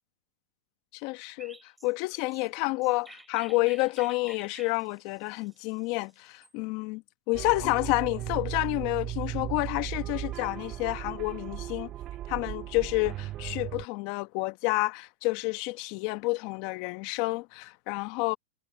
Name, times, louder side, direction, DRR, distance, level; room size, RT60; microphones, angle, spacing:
voice 1, 0.9-7.0 7.3-11.9 12.3-18.4, left 24 dB, 50° left, 1.2 m, -29 dB
Chirp tweet, 1.4-6.5, right 2 dB, 5° right, 5.4 m, -52 dB
sound 1, 7.3-13.8, right 13 dB, 35° right, 0.5 m, -36 dB
hypercardioid pair, 130°, 0 cm